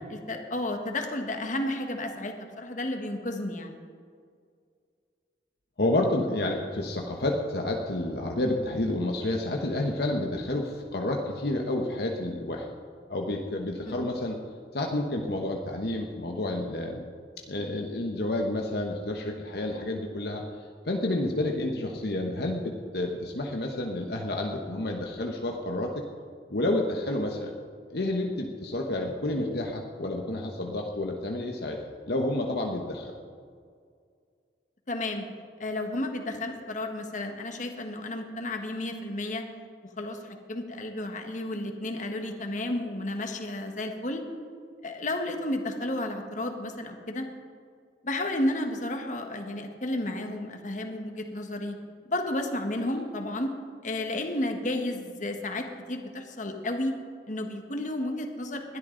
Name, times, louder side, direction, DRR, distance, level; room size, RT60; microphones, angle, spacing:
voice 1, 0.1-3.7 13.9-14.0 34.9-35.2 35.6-39.4 40.0-44.2 44.8-47.3 48.0-51.8 52.0-53.5 53.8-56.9 57.3-58.8, left 1 dB, 45° left, 4 dB, 1.5 m, -32 dB
voice 2, 5.8-12.7 13.1-14.4 14.7-17.0 17.5-26.0 26.5-27.5 27.9-31.8 32.1-33.2 52.7-53.0, left 1 dB, 60° left, 1 dB, 1.1 m, -30 dB
20.5 x 12.5 x 3.9 m, 2.1 s
head